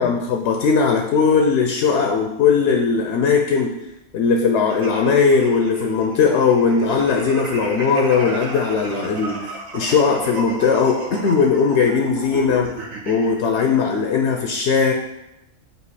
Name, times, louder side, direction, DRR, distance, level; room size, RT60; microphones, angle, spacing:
voice 1, 0.0-3.7 4.1-12.7 13.1-14.9, left 5 dB, 65° left, 3 dB, 0.8 m, -18 dB
sound 1, 4.7-13.3, right 2 dB, 75° right, 1.4 m, -32 dB
7.9 x 2.7 x 4.8 m, 0.89 s
omnidirectional pair, 1.4 m